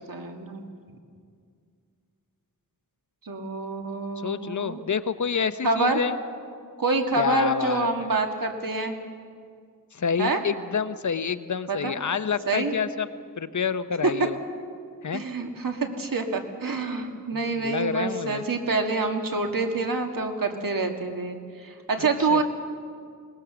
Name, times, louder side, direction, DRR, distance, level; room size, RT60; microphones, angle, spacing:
voice 1, 0.1-0.7 3.2-4.8 5.6-6.0 6.8-8.9 10.2-10.4 11.7-11.9 12.5-12.7 15.1-22.4, right 3 dB, 75° right, 4 dB, 2.1 m, -27 dB
voice 2, 4.2-6.2 7.2-7.9 9.9-13.1 13.4-14.4 15.0-15.2 17.3-18.4 22.3-22.4, left 6 dB, 55° left, 13 dB, 0.7 m, -28 dB
21.5 x 19.5 x 6.9 m, 2.2 s
wide cardioid pair, 75°, 34 cm